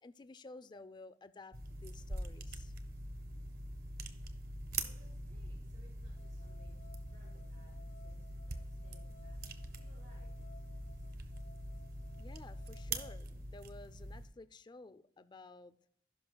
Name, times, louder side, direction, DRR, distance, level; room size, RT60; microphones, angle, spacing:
voice 1, 0.0-2.7 12.2-15.8, left 3 dB, 25° left, 14 dB, 0.4 m, -53 dB
sound 1, 1.5-14.3, right 2 dB, 55° right, 0.9 m, -44 dB
voice 2, 4.8-10.4, equal, 85° right, -2 dB, 2.6 m, -67 dB
sound 2, 6.2-13.2, left 5 dB, 75° left, 0.8 m, -62 dB
16.5 x 5.6 x 2.2 m, 0.71 s
head